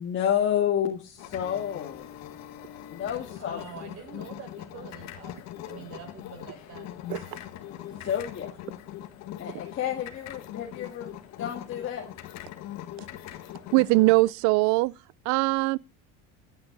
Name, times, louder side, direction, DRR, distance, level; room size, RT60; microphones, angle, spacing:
voice 1, 0.0-2.1 2.9-3.8 8.0-8.6 9.4-12.0, left 9 dB, 40° left, 1.9 m, -30 dB
sound 1, 1.2-14.3, left 12 dB, 65° left, 1.7 m, -41 dB
voice 2, 3.3-5.3 5.7-6.9, right 7 dB, 55° right, 6.9 m, -45 dB
voice 3, 13.7-14.9 15.3-15.8, right 22 dB, 75° right, 0.6 m, -21 dB
15.0 x 9.5 x 4.0 m
cardioid pair, 125°, 30 cm